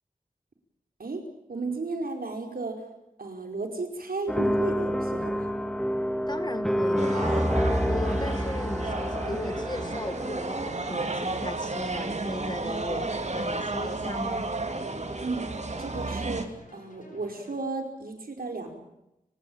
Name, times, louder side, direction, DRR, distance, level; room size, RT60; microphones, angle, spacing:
voice 1, 1.5-2.8 3.2-5.5 15.2-18.7, right 3 dB, 90° right, 3 dB, 4.9 m, -34 dB
sound 1, 4.3-11.4, equal, 5° left, 2.4 m, -28 dB
voice 2, 6.3-7.5 7.9-14.5, left 2 dB, 30° left, 9 dB, 2.1 m, -37 dB
sound 2, 7.0-16.4, right 2 dB, 50° right, 2.7 m, -32 dB
sound 3, 10.7-17.5, left 2 dB, 60° left, 7.1 m, -53 dB
30.0 x 16.5 x 8.9 m, 0.90 s
wide cardioid pair, 80°, 15 cm